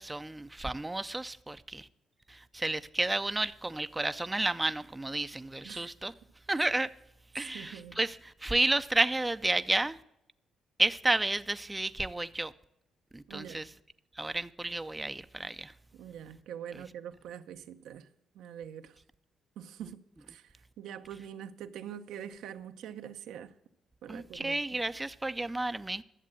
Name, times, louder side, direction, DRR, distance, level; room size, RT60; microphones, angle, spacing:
voice 1, 0.0-1.9 2.3-6.1 6.5-6.9 7.3-10.0 10.8-12.5 13.1-13.7 14.2-15.7 16.7-16.8 24.1-26.0, right 2 dB, 15° right, 0.5 m, -31 dB
voice 2, 7.5-8.0 13.3-13.7 15.9-18.1 18.4-18.9 19.6-20.0 20.3-20.4 20.8-23.5 24.0-24.6, right 9 dB, 85° right, 0.7 m, -44 dB
11.0 x 7.4 x 7.5 m
cardioid pair, 90°, 0 cm